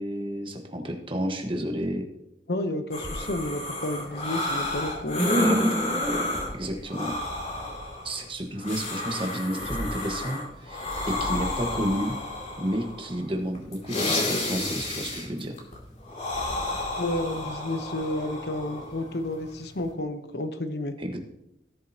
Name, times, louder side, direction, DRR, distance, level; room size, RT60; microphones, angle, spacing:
voice 1, 0.0-2.1 5.4-5.6 6.5-7.1 8.0-12.2 12.6-15.5 21.0-21.2, equal, 30° right, 3 dB, 1.4 m, -31 dB
voice 2, 2.5-5.4 17.0-21.0, left 1 dB, 65° left, 8 dB, 0.9 m, -31 dB
sound 1, 2.9-19.9, left 1 dB, 40° left, 2.5 m, -30 dB
17.5 x 7.5 x 2.9 m, 0.82 s
head